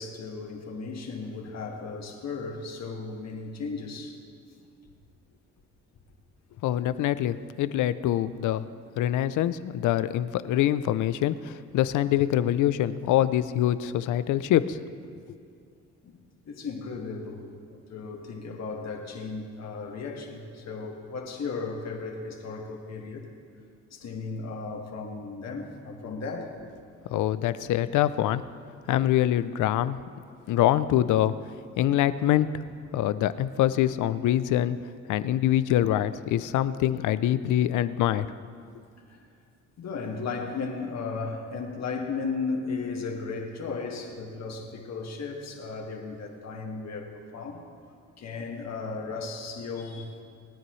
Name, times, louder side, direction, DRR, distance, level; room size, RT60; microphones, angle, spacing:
voice 1, 0.0-4.2 16.5-17.4 17.7-23.3 23.9-26.6 36.4-36.5 39.1-39.2 39.8-47.6 48.2-50.1, left 4 dB, 60° left, 1 dB, 1.9 m, -35 dB
voice 2, 6.6-8.7 9.0-14.8 27.1-28.4 28.9-30.0 30.5-31.3 31.8-32.6 32.9-34.8 35.1-38.3, left 12 dB, 80° left, 15 dB, 0.6 m, -24 dB
27.0 x 9.7 x 3.2 m, 2.3 s
cardioid pair, 90°, 30 cm